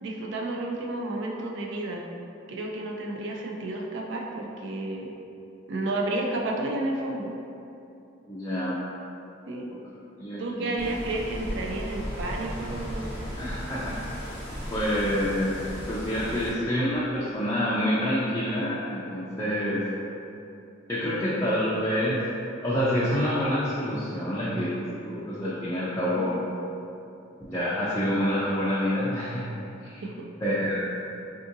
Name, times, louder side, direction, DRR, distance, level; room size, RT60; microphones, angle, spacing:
voice 1, 0.0-2.1 2.5-5.1 5.7-7.4 9.5-9.7 10.4-13.2 26.1-26.3 30.0-30.3, right 2 dB, 65° right, 0 dB, 0.4 m, -31 dB
voice 2, 8.3-8.8 10.2-10.8 13.4-13.9 14.7-15.6 15.9-19.8 20.9-22.2 22.6-26.4 27.5-29.4 29.8-30.0 30.4-30.8, equal, 15° left, -10 dB, 0.4 m, -27 dB
sound 1, 10.8-16.5, equal, 10° right, 0.9 m, -36 dB
3.5 x 2.6 x 2.5 m, 2.7 s
head